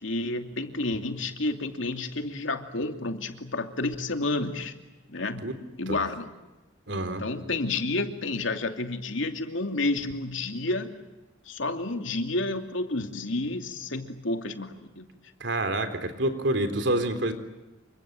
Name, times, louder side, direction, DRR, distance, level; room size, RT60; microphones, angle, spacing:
voice 1, 0.0-4.8 5.1-6.3 7.2-10.9 11.5-15.1, left 2 dB, 90° left, 6 dB, 2.8 m, -30 dB
voice 2, 6.9-7.2 15.4-17.3, right 1 dB, 65° right, 9 dB, 3.8 m, -27 dB
28.5 x 25.0 x 7.7 m, 1.1 s
head